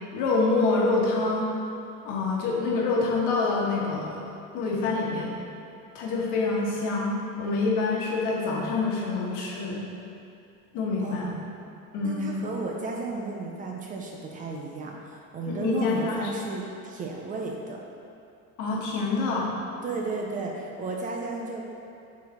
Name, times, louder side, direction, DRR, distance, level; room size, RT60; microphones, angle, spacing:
voice 1, 0.1-1.5 2.0-5.3 5.9-9.8 10.7-11.3 11.9-12.4 15.4-16.3 18.6-19.5, left 3 dB, 70° left, -3 dB, 1.3 m, -26 dB
voice 2, 11.0-11.5 12.0-17.8 19.8-21.6, right 3 dB, 25° right, 0 dB, 0.4 m, -34 dB
6.6 x 4.1 x 4.1 m, 2.6 s
cardioid pair, 175°, 32 cm